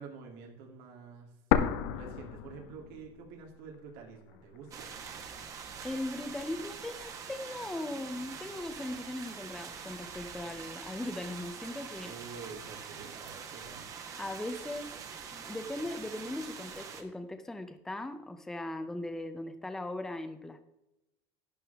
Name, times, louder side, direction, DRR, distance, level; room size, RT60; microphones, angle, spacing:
voice 1, 0.0-1.3 1.9-4.9 12.0-13.9, right 5 dB, 90° right, 0 dB, 2.8 m, -48 dB
sound 1, 1.5-3.5 3.7-3.8 4.6-5.5, left 9 dB, 85° left, 1.0 m, -31 dB
sound 2, 4.7-17.0, right 6 dB, 30° right, 1.2 m, -44 dB
voice 2, 5.8-12.1 14.2-15.0 15.3-20.6, left 1 dB, 5° left, 8 dB, 0.6 m, -39 dB
11.5 x 10.5 x 3.5 m, 0.89 s
cardioid pair, 180°, 11 cm